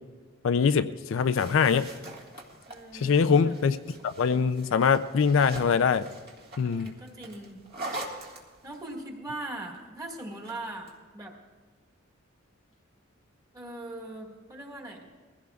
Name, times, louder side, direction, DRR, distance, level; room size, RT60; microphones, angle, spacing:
voice 1, 0.4-1.9 2.9-3.8 4.0-6.1 6.6-7.0, left 6 dB, 65° left, 11 dB, 0.4 m, -23 dB
sound 1, 1.1-8.9 10.2-11.0, right 2 dB, 50° right, 1.8 m, -44 dB
voice 2, 2.7-3.6 6.6-7.6 8.2-8.3 8.6-11.3 13.5-15.1, right 2 dB, 20° right, -1 dB, 1.7 m, -40 dB
21.5 x 16.0 x 2.4 m, 1.4 s
head